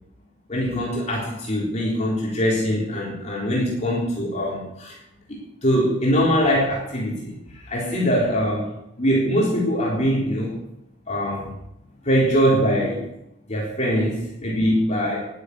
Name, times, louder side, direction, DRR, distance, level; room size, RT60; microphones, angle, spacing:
voice 1, 0.5-5.0 5.3-7.3 7.6-8.7 9.0-10.6 11.1-11.6 12.0-13.1 13.5-15.3, equal, 35° left, -4 dB, 4.0 m, -22 dB
11.5 x 11.5 x 8.1 m, 0.82 s
head